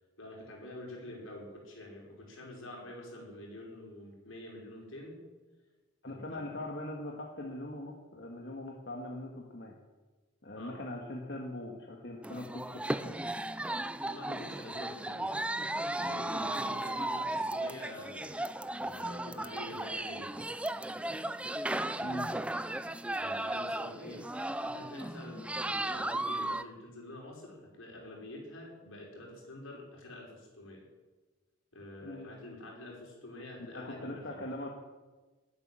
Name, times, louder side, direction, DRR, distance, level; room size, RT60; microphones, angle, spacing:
voice 1, 0.2-5.2 6.1-6.6 10.6-10.8 14.1-15.5 15.9-18.4 18.8-20.5 21.9-22.5 23.2-30.8 31.7-34.5, left 1 dB, 80° left, -1 dB, 5.5 m, -47 dB
voice 2, 6.0-9.7 10.4-13.2 22.0-22.3 32.0-32.3 33.6-34.7, left 1 dB, 55° left, -1 dB, 1.8 m, -41 dB
sound 1, 12.2-26.6, right 1 dB, 5° right, 0.4 m, -35 dB
20.0 x 8.7 x 7.7 m, 1.3 s
head